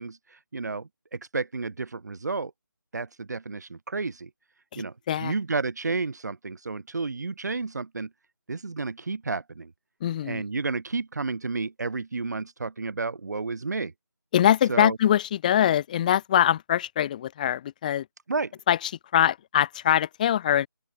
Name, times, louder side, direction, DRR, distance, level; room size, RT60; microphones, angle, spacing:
voice 1, 0.0-2.5 2.9-4.3 4.8-4.9 5.2-8.1 8.5-9.7 10.2-13.9 14.7-15.0 18.3-18.5, right 3 dB, 55° right, 3.9 m, -31 dB
voice 2, 4.7-5.3 10.0-10.4 14.3-18.1 18.7-20.7, left 11 dB, 25° left, 5.7 m, -23 dB
open air
figure-of-eight pair, 160°, 11 cm